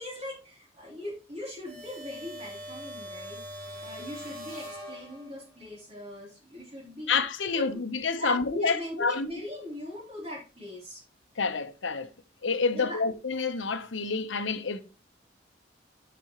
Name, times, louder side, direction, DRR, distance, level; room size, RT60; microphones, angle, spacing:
voice 1, 0.0-3.4 3.8-7.1 7.5-7.8 8.2-11.0 12.7-13.1, left 1 dB, 35° right, 3.6 m, -40 dB
sound 1, 1.7-5.6, equal, 55° right, 2.8 m, -42 dB
voice 2, 7.1-9.3 11.4-12.1 12.4-14.8, left 4 dB, 85° left, 1.0 m, -28 dB
12.0 x 5.2 x 3.0 m
head